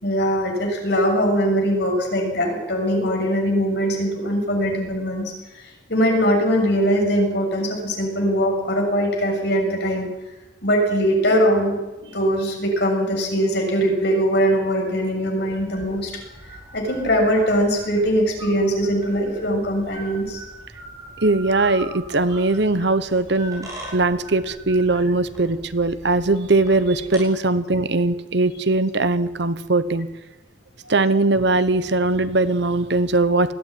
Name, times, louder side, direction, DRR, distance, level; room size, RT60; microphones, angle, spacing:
voice 1, 0.0-5.3 5.6-10.1 10.6-16.1 16.7-20.4, equal, 55° left, 1 dB, 6.8 m, -21 dB
sound 1, 15.5-27.2, right 2 dB, 15° right, 7.6 m, -40 dB
voice 2, 21.2-30.1 30.9-33.5, right 2 dB, 60° right, 13 dB, 1.1 m, -20 dB
20.5 x 15.0 x 9.4 m, 1.1 s
head